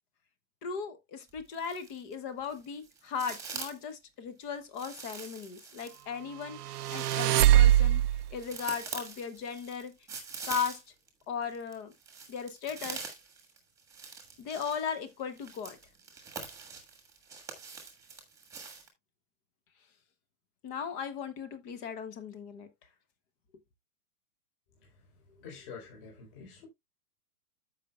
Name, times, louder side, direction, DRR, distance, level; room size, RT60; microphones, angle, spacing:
voice 1, 0.6-8.0 8.3-9.9 10.5-10.8 11.3-11.9 12.3-13.0 14.4-15.8 20.6-22.7, left 6 dB, 15° left, 0.7 m, -37 dB
Footsteps Slowly Branches, 1.3-2.1 2.4-3.9 4.7-11.1 11.4-18.9, right 5 dB, 5° right, 1.5 m, -44 dB
sound 1, 6.6-8.3, right 13 dB, 85° right, 0.7 m, -22 dB
voice 2, 25.3-26.7, left 5 dB, 40° left, 3.7 m, -48 dB
14.0 x 5.4 x 2.2 m
hypercardioid pair, 160°, 45 cm